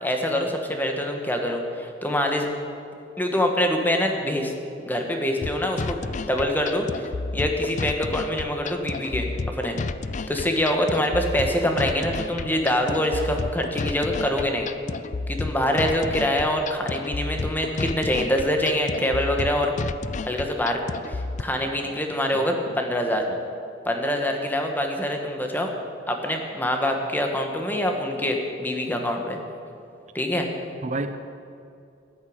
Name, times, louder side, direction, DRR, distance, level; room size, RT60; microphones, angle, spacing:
voice 1, 0.0-2.5 3.2-4.5 4.8-7.0 7.3-9.3 9.6-9.8 10.3-14.7 15.3-19.7 20.3-20.8 21.1-23.2 23.8-25.7 26.1-29.4 30.1-30.5, left 1 dB, 10° left, 3 dB, 1.6 m, -25 dB
sound 1, 5.4-21.4, left 3 dB, 40° left, 0.4 m, -31 dB
voice 2, 22.3-22.8 23.3-23.4 30.8-31.2, right 2 dB, 40° right, 9 dB, 0.6 m, -32 dB
13.5 x 10.5 x 8.8 m, 2.6 s
head